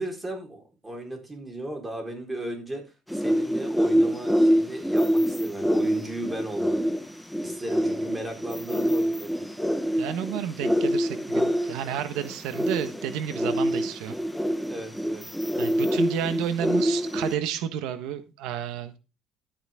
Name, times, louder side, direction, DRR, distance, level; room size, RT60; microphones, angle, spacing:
voice 1, 0.0-2.8 3.1-6.8 7.4-9.4 14.7-15.2, right 1 dB, 15° right, 3 dB, 4.2 m, -36 dB
sound 1, 3.1-17.3, equal, ahead, 1.2 m, -25 dB
voice 2, 10.0-14.1 15.6-19.0, right 9 dB, 85° right, 10 dB, 1.4 m, -31 dB
13.0 x 9.2 x 3.7 m, 0.29 s
cardioid pair, 120°, 0 cm